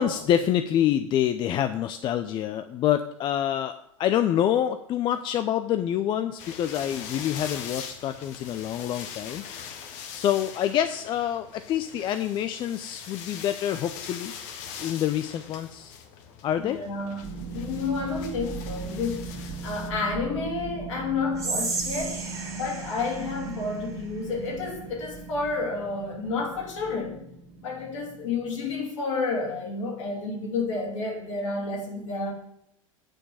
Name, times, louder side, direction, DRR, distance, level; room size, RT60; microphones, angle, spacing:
voice 1, 0.0-3.7 4.0-9.4 10.1-14.3 14.8-16.0 16.4-16.8, left 10 dB, 30° left, 0.4 m, -26 dB
sound 1, 6.4-19.9, left 7 dB, 45° left, 1.1 m, -42 dB
voice 2, 16.6-22.2 22.6-27.2 27.6-32.3, left 4 dB, 60° left, 2.7 m, -30 dB
sound 2, 17.2-28.8, right 5 dB, 45° right, 1.8 m, -39 dB
Whispering, 21.3-24.6, right 3 dB, 15° right, 2.0 m, -34 dB
8.9 x 4.5 x 7.2 m
figure-of-eight pair, 90°, 17 cm